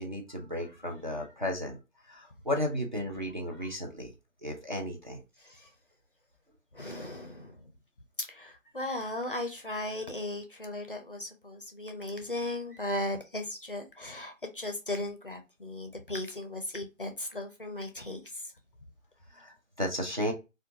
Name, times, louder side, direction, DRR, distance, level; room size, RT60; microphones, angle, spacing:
voice 1, 0.0-1.8 2.1-4.1 4.4-5.2 5.6-5.7 19.3-20.3, left 1 dB, 40° right, 0.4 m, -34 dB
voice 2, 5.4-5.7 6.7-7.7 8.2-18.5, left 1 dB, 45° left, 0.4 m, -37 dB
2.4 x 2.2 x 2.7 m
figure-of-eight pair, 165°, 39 cm